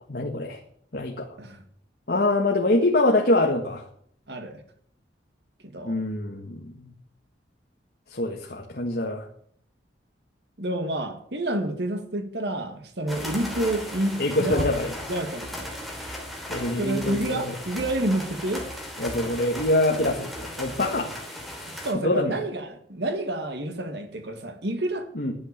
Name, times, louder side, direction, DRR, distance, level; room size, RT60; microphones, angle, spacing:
voice 1, 0.1-0.6 0.9-1.3 2.1-3.9 5.8-6.9 8.1-9.3 14.2-14.9 16.5-17.4 19.0-21.1 21.9-22.3 25.1-25.3, left 2 dB, 55° left, 1 dB, 1.6 m, -24 dB
voice 2, 4.3-4.6 5.6-6.0 10.6-14.7 15.1-15.7 16.8-18.7 21.7-25.1, right 1 dB, 65° right, 6 dB, 2.0 m, -29 dB
sound 1, 13.1-21.9, equal, ahead, 3.0 m, -36 dB
12.0 x 8.1 x 8.5 m, 0.64 s
head